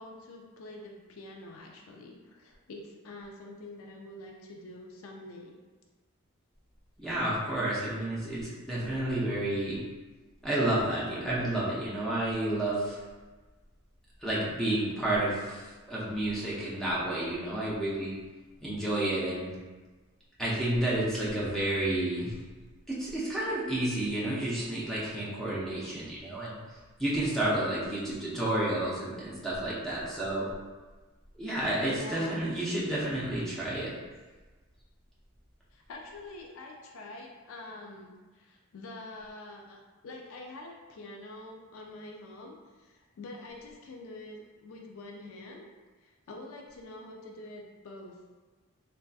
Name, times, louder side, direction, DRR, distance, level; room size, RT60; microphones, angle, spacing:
voice 1, 0.0-5.5 31.9-32.4 35.7-45.6 46.0-48.3, left 2 dB, 65° left, 0 dB, 0.4 m, -46 dB
voice 2, 7.0-9.8 10.4-13.0 14.2-18.1 18.6-19.5 20.4-22.3 22.9-26.6 27.0-30.5 31.4-33.9, right 1 dB, ahead, -8 dB, 0.6 m, -30 dB
3.3 x 2.6 x 2.3 m, 1.3 s
head